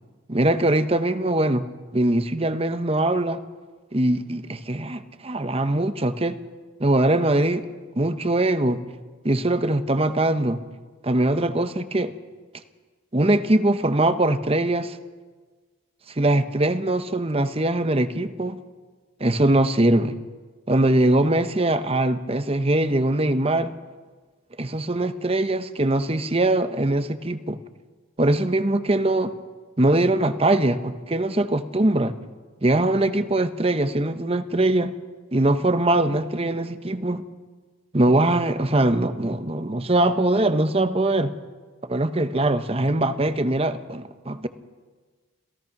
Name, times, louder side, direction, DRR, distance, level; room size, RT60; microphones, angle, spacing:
voice 1, 0.3-1.7 1.9-3.4 3.9-6.4 6.8-7.7 8.0-8.8 9.2-10.6 11.0-12.1 13.1-15.0 16.2-18.6 19.2-20.1 20.7-23.7 24.6-27.6 28.2-29.3 29.8-32.2 32.6-34.9 35.3-37.2 37.9-41.4 41.8-44.5, right 1 dB, 30° right, 11 dB, 0.9 m, -22 dB
27.5 x 16.5 x 6.0 m, 1.4 s
head